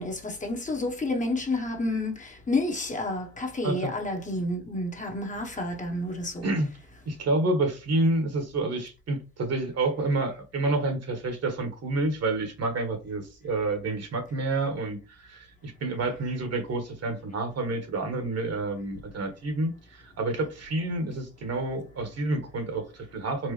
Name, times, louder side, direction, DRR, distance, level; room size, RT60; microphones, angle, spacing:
voice 1, 0.0-2.1 2.5-6.5, left 2 dB, 25° left, 1.1 m, -30 dB
voice 2, 7.0-23.5, right 2 dB, 55° right, 1.5 m, -29 dB
4.6 x 2.5 x 3.2 m
cardioid pair, 90°, 30 cm